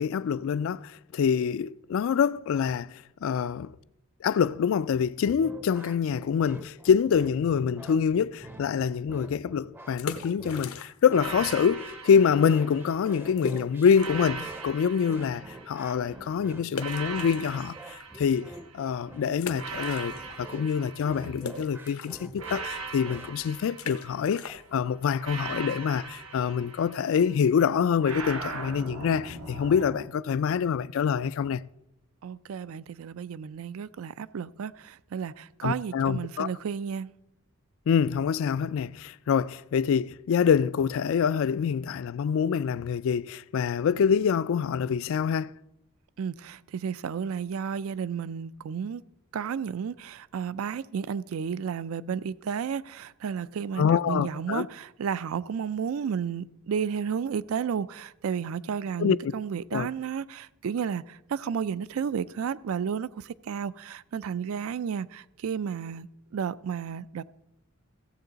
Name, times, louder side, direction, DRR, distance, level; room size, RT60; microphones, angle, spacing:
voice 1, 0.0-3.7 4.2-17.8 18.2-20.1 20.4-31.6 35.6-36.5 37.9-45.5 53.8-54.7 59.0-59.2 59.7-59.9, left 7 dB, 65° left, 0.3 m, -26 dB
sound 1, 5.2-23.3, right 1 dB, 10° right, 0.5 m, -46 dB
sound 2, 9.8-11.2 11.5-11.6 12.2-12.3 12.5-12.6 13.4-14.3 14.8-14.9 16.7-18.0 18.5-18.6 19.3-20.5 20.8-26.3, left 4 dB, 80° left, 0.8 m, -40 dB
sound 3, 11.1-13.3 13.9-16.1 16.7-18.9 19.5-21.7 22.4-24.5 25.2-27.4 28.0-30.1, right 4 dB, 90° right, 1.2 m, -40 dB
voice 2, 32.2-37.1 46.2-49.0 49.3-66.1 66.3-67.2, right 7 dB, 70° right, 0.4 m, -32 dB
15.5 x 7.5 x 4.0 m
head